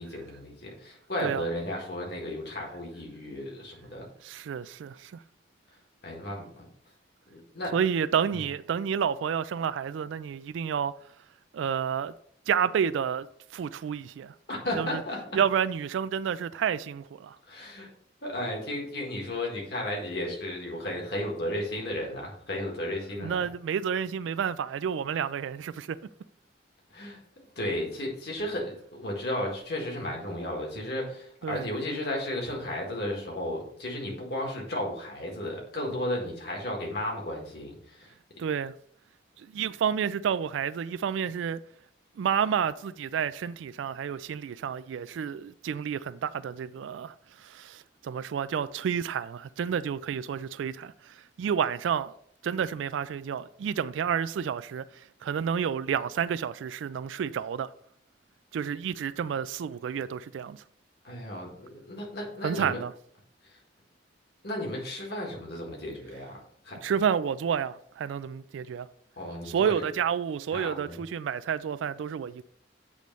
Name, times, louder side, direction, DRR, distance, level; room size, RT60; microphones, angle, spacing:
voice 1, 0.0-4.0 6.0-6.7 7.3-7.7 8.3-8.4 14.5-15.2 17.5-17.9 18.2-23.4 26.9-38.1 61.0-62.8 63.5-63.6 64.4-66.4 66.6-66.8 69.2-69.8 70.5-71.0, left 1 dB, 55° left, 1.8 m, -34 dB
voice 2, 4.2-5.2 7.7-11.0 11.5-12.1 12.5-13.3 13.5-14.3 14.7-15.0 15.3-17.4 23.2-26.0 31.4-31.7 38.4-38.7 39.4-41.6 42.2-52.1 52.4-57.7 58.5-60.6 62.4-62.9 66.8-68.9 69.5-72.4, right 7 dB, 85° right, 0.3 m, -30 dB
8.4 x 3.1 x 5.3 m
head